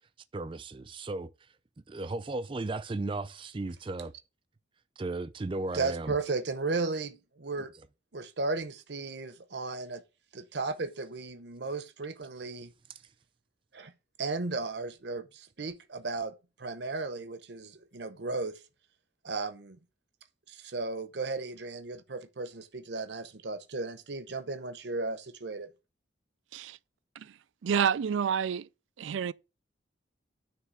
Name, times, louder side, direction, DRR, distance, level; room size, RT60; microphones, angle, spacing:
voice 1, 0.3-1.3 1.9-4.1 5.0-6.2, right 2 dB, 25° right, 0.4 m, -35 dB
voice 2, 5.7-7.7 8.1-10.0 10.3-12.7 13.7-13.9 14.2-18.6 19.2-19.8 20.5-25.7, right 3 dB, 65° right, 0.8 m, -35 dB
voice 3, 27.6-28.7 29.0-29.3, right 7 dB, 90° right, 0.4 m, -29 dB
9.8 x 3.4 x 6.1 m
head